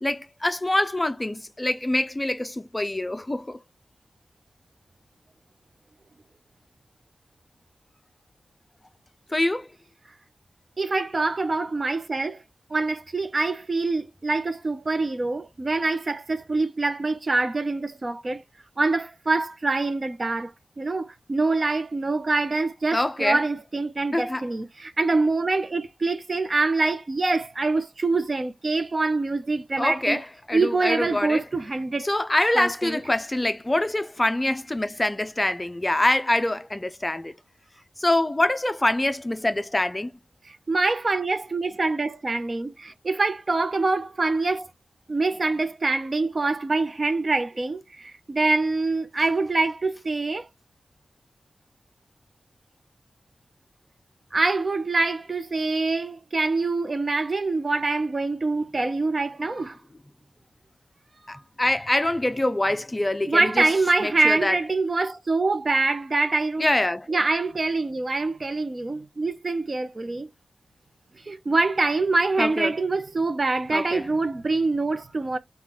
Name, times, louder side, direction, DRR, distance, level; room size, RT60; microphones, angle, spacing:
voice 1, 0.0-3.6 9.3-9.7 22.9-23.4 24.1-24.5 29.8-31.4 32.0-37.3 38.0-40.1 61.3-63.7 64.0-64.6 66.6-67.1 72.4-72.7 73.7-74.0, left 1 dB, 20° left, 0.5 m, -25 dB
voice 2, 10.8-12.4 12.7-18.4 18.8-20.5 20.8-30.2 30.5-32.1 32.5-33.0 40.5-44.7 45.1-50.5 54.3-59.8 61.3-61.4 63.3-66.7 67.1-70.3 71.3-75.4, right 3 dB, 45° right, 0.7 m, -25 dB
3.8 x 2.4 x 4.3 m
cardioid pair, 55°, 0 cm